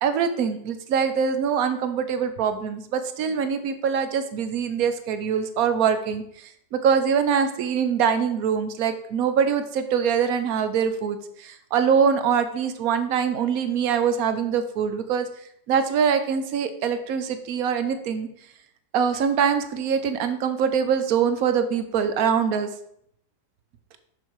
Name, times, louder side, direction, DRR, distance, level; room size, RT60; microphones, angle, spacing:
voice 1, 0.0-15.3 15.7-18.3 18.9-22.7, right 7 dB, 60° right, 10 dB, 1.1 m, -23 dB
6.3 x 6.1 x 4.6 m, 0.71 s
omnidirectional pair, 1.9 m